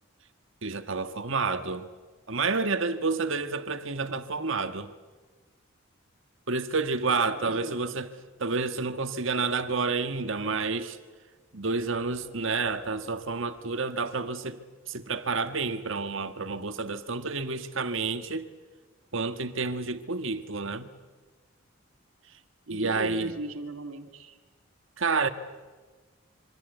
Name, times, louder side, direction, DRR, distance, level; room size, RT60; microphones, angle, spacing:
voice 1, 0.6-1.9 2.3-4.9 6.5-8.1 8.4-11.0 11.5-14.6 14.9-18.5 19.1-20.9 22.7-23.3 25.0-25.3, right 4 dB, 65° right, 1.6 m, -29 dB
voice 2, 7.1-7.8 22.7-24.4, right 2 dB, 85° right, 2.5 m, -38 dB
sound 1, 11.8-15.4, right 1 dB, 20° right, 3.7 m, -56 dB
26.5 x 24.5 x 8.1 m
head